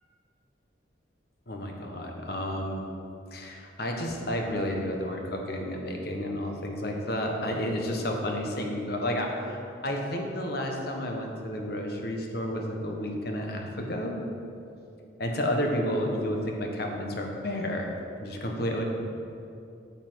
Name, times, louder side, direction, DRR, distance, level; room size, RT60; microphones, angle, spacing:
voice 1, 1.5-2.9 3.3-14.2 15.2-18.8, equal, 55° left, 2 dB, 1.2 m, -31 dB
8.7 x 5.9 x 6.2 m, 2.6 s
head